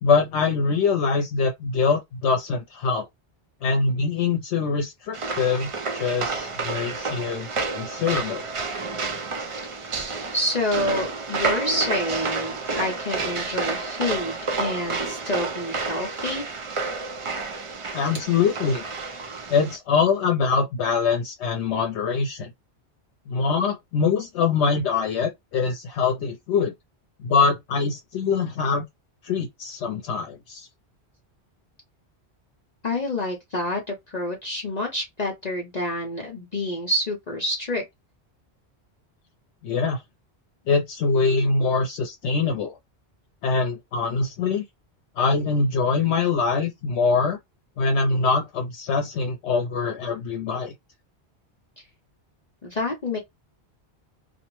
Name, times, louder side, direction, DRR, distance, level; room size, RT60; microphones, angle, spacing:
voice 1, 0.0-3.1 3.6-7.5 7.8-8.5 17.9-18.8 19.5-22.5 23.3-26.7 27.2-28.8 29.2-30.7 39.6-40.0 40.7-42.8 43.4-44.6 45.2-47.4 47.8-50.7, left 5 dB, 80° left, 0.9 m, -23 dB
sound 1, 5.1-19.8, right 4 dB, 45° right, 0.4 m, -30 dB
voice 2, 10.3-16.5 32.8-37.8 52.6-53.2, left 1 dB, 45° left, 0.7 m, -28 dB
2.5 x 2.0 x 3.0 m
omnidirectional pair, 1.1 m